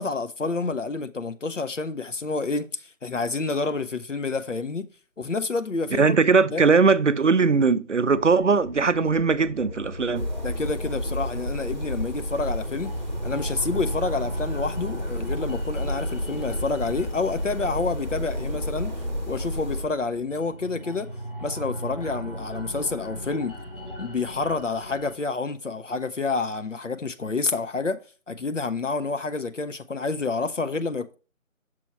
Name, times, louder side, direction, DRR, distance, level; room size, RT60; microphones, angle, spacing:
voice 1, 0.0-4.9 5.2-6.2 6.5-6.6 10.4-12.9 13.2-19.0 19.3-21.1 21.4-23.6 24.0-31.2, left 3 dB, 65° left, 0.7 m, -28 dB
voice 2, 6.0-10.3, right 4 dB, 65° right, 0.5 m, -20 dB
sound 1, 8.1-25.1, equal, 40° left, 1.8 m, -38 dB
sound 2, 10.1-19.9, equal, 35° right, 0.9 m, -31 dB
6.2 x 4.3 x 4.3 m
figure-of-eight pair, 175°, 40 cm